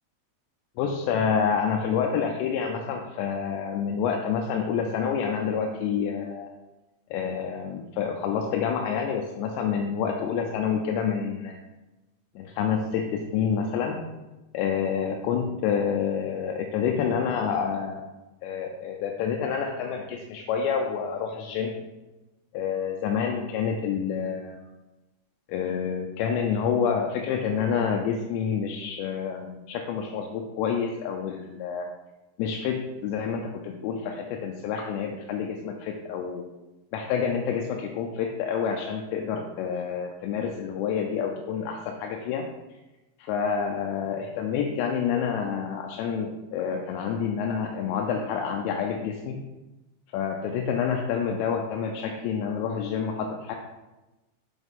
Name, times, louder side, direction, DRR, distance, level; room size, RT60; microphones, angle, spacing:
voice 1, 0.8-6.5 7.1-11.6 12.4-14.0 14.5-18.0 18.4-21.7 22.5-24.6 25.5-31.9 32.4-36.4 36.9-42.5 43.2-49.4 50.1-53.6, left 7 dB, 85° left, 2 dB, 2.9 m, -28 dB
7.2 x 6.1 x 3.6 m, 1.1 s
omnidirectional pair, 5.0 m